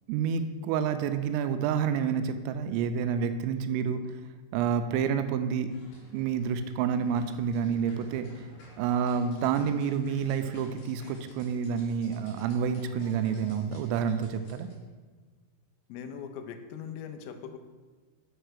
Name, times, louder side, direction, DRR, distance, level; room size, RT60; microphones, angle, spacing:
voice 1, 0.1-4.0 4.5-5.7 6.1-8.5 8.8-14.7, right 7 dB, 85° right, 9 dB, 3.1 m, -29 dB
sound 1, 5.7-14.7, left 1 dB, 60° left, 2.5 m, -52 dB
voice 2, 15.9-17.6, left 7 dB, 85° left, 7 dB, 3.2 m, -40 dB
6.7 x 5.6 x 6.3 m, 1.4 s
omnidirectional pair, 5.9 m